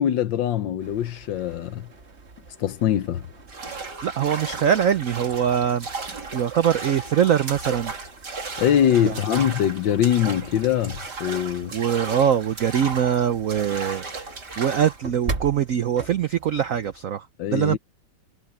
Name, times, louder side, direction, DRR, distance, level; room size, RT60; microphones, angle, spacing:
voice 1, 0.0-1.9 2.6-3.2 8.6-11.7 17.4-17.8, left 10 dB, 65° left, 1.4 m, -23 dB
sound 1, 0.8-17.0, right 3 dB, 35° right, 1.8 m, -42 dB
sound 2, 3.5-15.0, right 3 dB, 50° right, 3.9 m, -35 dB
voice 2, 4.0-5.9 6.3-7.9 9.0-9.2 11.7-17.3 17.5-17.8, right 9 dB, 85° right, 0.7 m, -23 dB
omnidirectional pair, 2.3 m